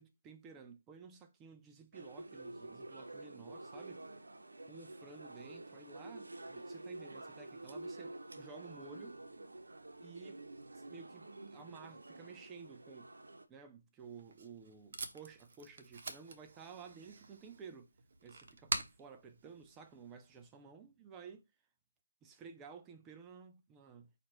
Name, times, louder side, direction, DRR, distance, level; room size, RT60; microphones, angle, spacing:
voice 1, 0.0-4.1 4.6-9.2 10.0-10.4 10.7-13.1 13.5-17.9 18.2-21.4 22.2-24.1, right 5 dB, 10° right, 0.3 m, -54 dB
sound 1, 1.9-13.5, right 2 dB, 80° right, 0.8 m, -49 dB
Packing tape duct tape, 14.0-20.5, right 4 dB, 40° right, 0.8 m, -46 dB
4.6 x 2.4 x 4.4 m
figure-of-eight pair, 165°, 0 cm